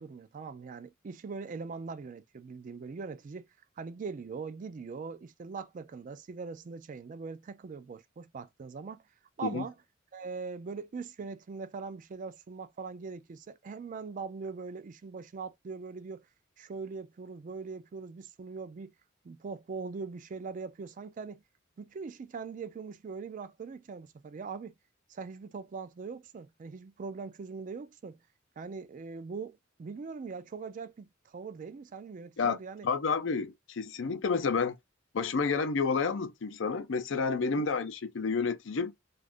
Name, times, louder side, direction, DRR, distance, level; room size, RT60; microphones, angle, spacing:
voice 1, 0.0-3.5 3.8-9.0 9.4-9.7 10.1-16.3 16.6-18.9 19.2-21.4 21.8-24.7 25.1-28.2 28.6-32.9 37.6-37.7, right 4 dB, 40° right, 0.3 m, -41 dB
voice 2, 32.8-34.8 35.1-38.9, left 5 dB, 70° left, 0.5 m, -30 dB
2.5 x 2.4 x 3.4 m
head